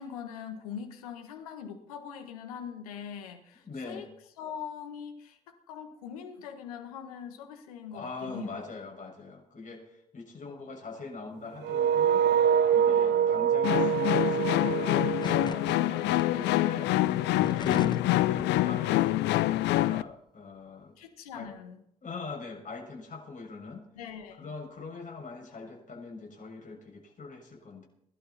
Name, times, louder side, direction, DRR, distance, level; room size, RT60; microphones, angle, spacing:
voice 1, 0.0-4.1 4.4-8.6 10.4-10.6 12.9-13.5 21.0-21.8 23.9-24.5, left 7 dB, 90° left, 7 dB, 1.5 m, -42 dB
voice 2, 3.6-4.1 7.9-12.2 12.7-16.9 17.3-21.0 21.3-21.5 22.0-23.9 24.4-27.9, left 3 dB, 45° left, 1 dB, 6.4 m, -42 dB
sound 1, 11.6-16.5, right 8 dB, 65° right, 0.7 m, -25 dB
sound 2, 13.6-20.0, left 16 dB, 75° left, 0.5 m, -26 dB
sound 3, 15.2-15.8 16.2-16.3 17.1-18.1 18.4-18.7, left 4 dB, 25° left, 0.7 m, -39 dB
21.0 x 12.0 x 4.3 m, 0.74 s
hypercardioid pair, 45°, 18 cm